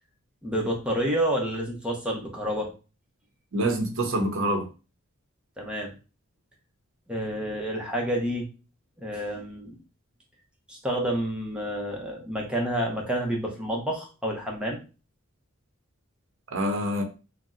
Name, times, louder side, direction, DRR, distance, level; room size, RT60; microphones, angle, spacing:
voice 1, 0.4-2.7 5.6-5.9 7.1-8.5 9.0-9.8 10.7-14.8, right 1 dB, 5° right, 0.6 m, -29 dB
voice 2, 3.5-4.7 16.5-17.0, right 1 dB, 65° right, 0.6 m, -26 dB
2.7 x 2.0 x 3.4 m
head